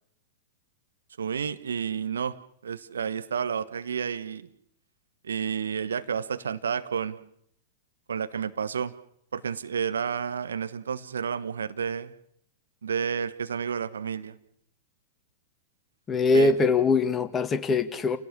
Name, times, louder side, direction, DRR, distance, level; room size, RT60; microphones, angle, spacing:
voice 1, 1.2-2.3 2.6-4.5 5.2-7.2 8.1-8.9 9.3-12.1 12.8-14.4 16.3-16.5, right 7 dB, 70° right, 1.3 m, -30 dB
voice 2, 16.1-18.2, left 4 dB, 20° left, 1.9 m, -22 dB
30.0 x 17.5 x 7.1 m
figure-of-eight pair, 100°, 0 cm